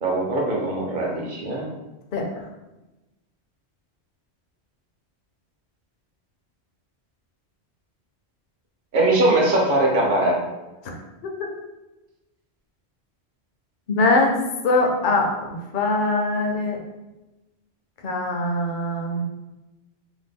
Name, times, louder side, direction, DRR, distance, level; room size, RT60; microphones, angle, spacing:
voice 1, 0.0-1.7 8.9-10.4, right 2 dB, 60° right, -1 dB, 0.8 m, -21 dB
voice 2, 13.9-16.8 18.0-19.2, left 2 dB, 60° left, 1 dB, 0.6 m, -22 dB
2.7 x 2.1 x 3.5 m, 1.1 s
omnidirectional pair, 1.1 m